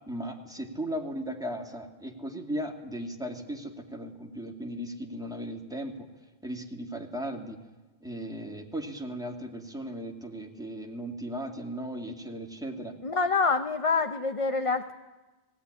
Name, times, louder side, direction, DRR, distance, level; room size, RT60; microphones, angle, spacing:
voice 1, 0.1-6.1 6.4-7.6 8.0-12.9, equal, 5° right, 2 dB, 2.2 m, -37 dB
voice 2, 13.0-14.9, left 4 dB, 35° left, 7 dB, 0.8 m, -26 dB
20.0 x 17.0 x 9.8 m, 1.2 s
omnidirectional pair, 1.1 m